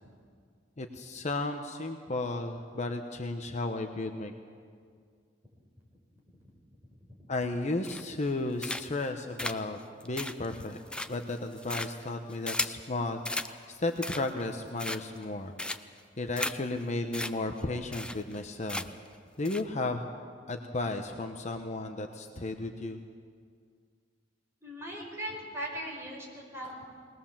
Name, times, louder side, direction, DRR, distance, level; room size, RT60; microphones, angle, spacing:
voice 1, 0.8-4.3 7.3-9.8 10.0-10.8 11.1-15.5 16.2-18.9 19.4-20.0 20.5-23.0, left 2 dB, 40° left, 5 dB, 1.0 m, -34 dB
voice 2, 6.9-7.3 24.6-26.8, equal, 15° right, -3 dB, 5.2 m, -39 dB
sound 1, 7.8-8.3 8.6-9.1 9.4-12.8 13.2-13.5 13.9-14.4 14.8-15.2 15.6-16.0 16.4-16.5 16.8-16.9 17.1-17.3 17.6-17.7 17.9-18.4 18.7-19.1 19.4-19.6, left 1 dB, 5° left, 0.6 m, -35 dB
20.5 x 20.0 x 7.4 m, 2.1 s
head